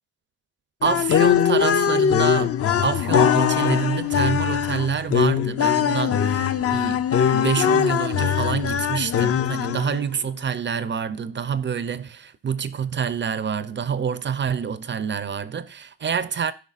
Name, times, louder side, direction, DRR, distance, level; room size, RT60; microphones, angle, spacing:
sound 1, 0.8-10.0, left 8 dB, 35° left, 0.4 m, -21 dB
voice 1, 0.8-16.5, right 7 dB, 25° right, 0.5 m, -27 dB
12.5 x 5.1 x 2.4 m
cardioid pair, 100°, 43 cm